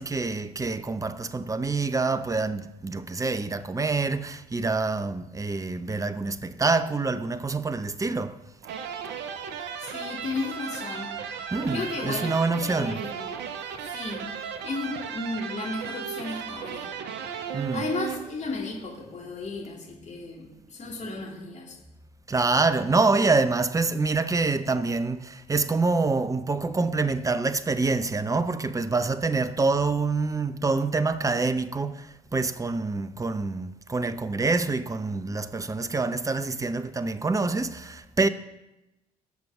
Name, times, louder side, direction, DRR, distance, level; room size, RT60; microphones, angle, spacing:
voice 1, 0.0-8.4 11.5-13.0 17.5-17.9 22.3-38.3, right 3 dB, 15° right, 0.7 m, -26 dB
sound 1, 8.6-18.6, right 8 dB, 60° right, 1.1 m, -36 dB
voice 2, 9.8-11.2 11.7-12.4 12.7-13.3 13.8-14.4 14.6-17.0 17.7-21.8, left 3 dB, 35° left, 2.7 m, -34 dB
19.0 x 6.9 x 3.7 m
figure-of-eight pair, 50°, 20 cm